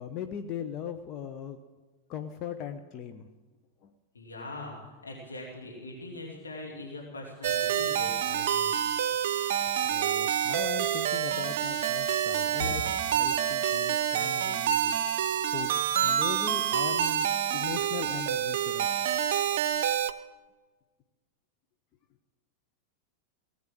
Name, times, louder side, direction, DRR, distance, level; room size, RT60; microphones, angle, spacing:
voice 1, 0.0-1.6 2.1-3.3 3.8-3.9 9.9-12.8 13.1-15.0 15.5-15.7 16.0-17.3 17.5-19.1, left 9 dB, 35° left, 7 dB, 0.8 m, -39 dB
voice 2, 4.1-8.8 12.6-12.7, left 2 dB, 75° left, -1 dB, 2.8 m, -41 dB
sound 1, 7.4-20.1, right 10 dB, 55° right, 0.6 m, -28 dB
18.0 x 8.7 x 7.7 m, 1.3 s
figure-of-eight pair, 90°, 0 cm